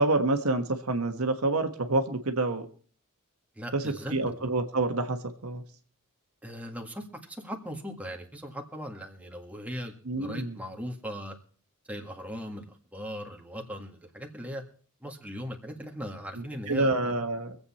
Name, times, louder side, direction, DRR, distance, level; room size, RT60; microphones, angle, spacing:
voice 1, 0.0-2.7 3.7-5.6 10.0-10.6 16.3-17.6, right 2 dB, 75° right, 6 dB, 1.4 m, -28 dB
voice 2, 3.6-4.1 6.4-7.1 7.4-11.4 11.9-14.6 15.0-17.1, equal, 5° right, 1 dB, 1.7 m, -39 dB
24.0 x 8.0 x 4.3 m, 0.44 s
head